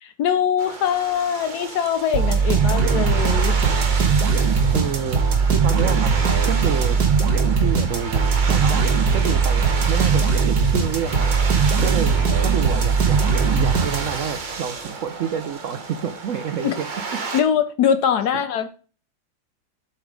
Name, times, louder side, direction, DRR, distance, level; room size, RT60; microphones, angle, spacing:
voice 1, 0.0-3.6 16.6-16.8 17.3-18.7, left 8 dB, 65° left, 1.1 m, -22 dB
sound 1, 0.6-17.4, right 4 dB, 40° right, 0.7 m, -32 dB
sound 2, 2.1-14.4, right 5 dB, 55° right, 1.9 m, -19 dB
voice 2, 4.7-5.2 5.5-6.1 6.5-7.0 7.6-11.3 11.8-13.2 13.5-16.9 17.1-17.2, right 8 dB, 80° right, 0.7 m, -28 dB
7.9 x 4.3 x 5.1 m
omnidirectional pair, 2.1 m